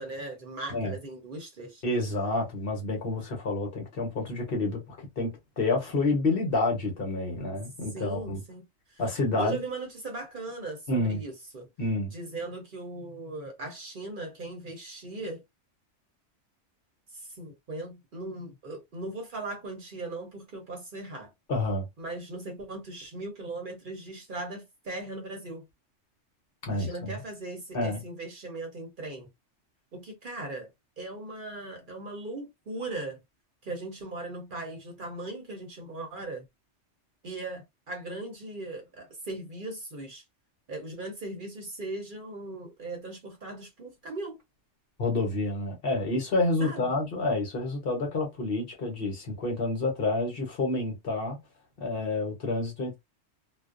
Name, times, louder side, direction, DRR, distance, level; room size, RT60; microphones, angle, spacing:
voice 1, 0.0-1.8 7.9-9.0 9.4-11.7 12.1-15.4 17.1-21.3 22.0-25.6 26.7-29.3 29.9-30.7 31.0-33.2 33.6-36.4 37.2-40.2 40.7-44.4 46.6-46.9, right 2 dB, 50° right, 0.8 m, -38 dB
voice 2, 1.8-8.4 9.0-9.6 10.9-11.2 11.8-12.1 21.5-21.9 26.6-27.1 27.7-28.0 45.0-51.4 51.8-53.0, left 2 dB, 55° left, 1.0 m, -29 dB
2.4 x 2.1 x 2.4 m
omnidirectional pair, 1.2 m